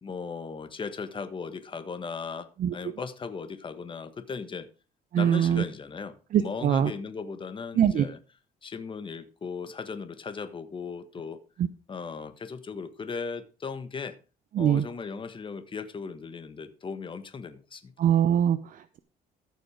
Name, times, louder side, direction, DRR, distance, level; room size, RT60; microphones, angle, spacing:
voice 1, 0.0-4.7 5.1-8.2 8.6-11.4 11.9-14.2 14.6-17.9, left 5 dB, 30° left, 1.4 m, -37 dB
voice 2, 5.1-5.6 6.3-6.9 7.8-8.0 14.5-14.8 18.0-19.0, right 9 dB, 55° right, 0.8 m, -23 dB
14.0 x 6.5 x 5.0 m
cardioid pair, 110°, 17 cm